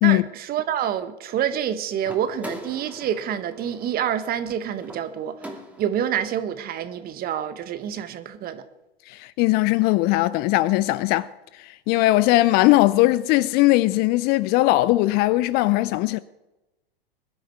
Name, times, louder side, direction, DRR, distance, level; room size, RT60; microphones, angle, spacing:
voice 1, 0.0-5.4 5.8-8.6, right 9 dB, 30° right, 1.4 m, -27 dB
sound 1, 2.0-6.1, right 1 dB, 5° right, 2.5 m, -41 dB
voice 2, 9.1-11.3 11.6-16.2, left 18 dB, 35° left, 0.5 m, -19 dB
22.0 x 12.0 x 4.7 m
hypercardioid pair, 100°, 30 cm